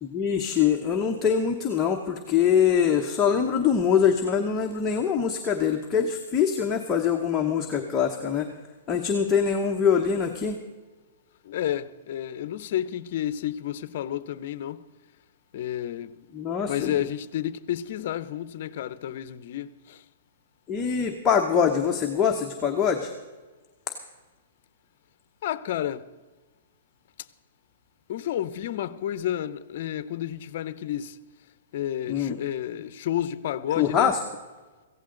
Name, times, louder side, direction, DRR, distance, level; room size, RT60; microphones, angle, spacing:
voice 1, 0.0-8.5 8.9-10.6 16.3-17.1 20.7-23.1 32.1-32.4 33.7-34.3, left 7 dB, 15° left, 0.9 m, -24 dB
voice 2, 11.5-14.8 15.5-16.1 16.7-19.7 25.4-26.0 28.1-31.1 31.7-34.1, left 11 dB, 50° left, 0.7 m, -30 dB
16.5 x 15.5 x 3.9 m
hypercardioid pair, 160°, 0 cm